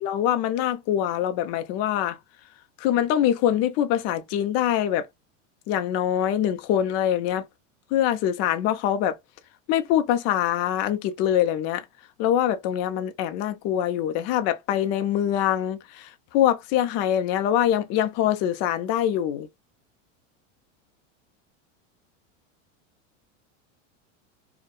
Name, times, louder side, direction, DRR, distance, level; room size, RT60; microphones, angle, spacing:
voice 1, 0.0-2.2 2.8-5.1 5.7-7.5 7.9-9.2 9.7-11.8 12.2-19.5, left 11 dB, 40° left, 0.5 m, -24 dB
2.7 x 2.1 x 2.3 m
supercardioid pair, 135°, 38 cm